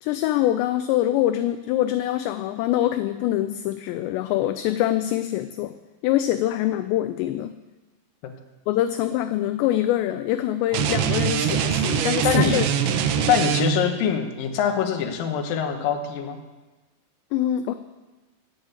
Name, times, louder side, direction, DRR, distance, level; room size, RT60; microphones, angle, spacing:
voice 1, 0.0-5.7 6.0-7.5 8.7-13.3 17.3-17.7, left 13 dB, 85° left, 10 dB, 2.5 m, -24 dB
sound 1, 10.7-14.0, right 9 dB, 80° right, 3.0 m, -23 dB
voice 2, 12.2-12.7 13.3-16.4, left 8 dB, 70° left, 4 dB, 2.3 m, -24 dB
16.5 x 6.3 x 8.1 m, 1.2 s
omnidirectional pair, 5.4 m